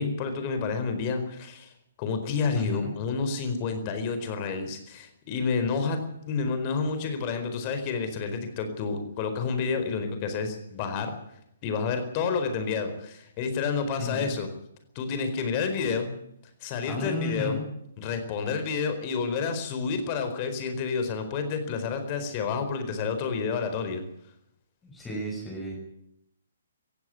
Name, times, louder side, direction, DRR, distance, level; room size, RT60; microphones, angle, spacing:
voice 1, 0.0-1.7 2.0-6.0 6.3-11.1 11.6-14.5 14.9-16.1 16.6-17.6 18.0-24.0, left 5 dB, 30° left, 8 dB, 4.5 m, -29 dB
voice 2, 2.5-2.9 14.0-14.3 16.9-17.6 24.8-25.8, left 2 dB, 10° left, -2 dB, 6.1 m, -33 dB
17.5 x 15.5 x 9.9 m, 0.76 s
figure-of-eight pair, 130°, 0 cm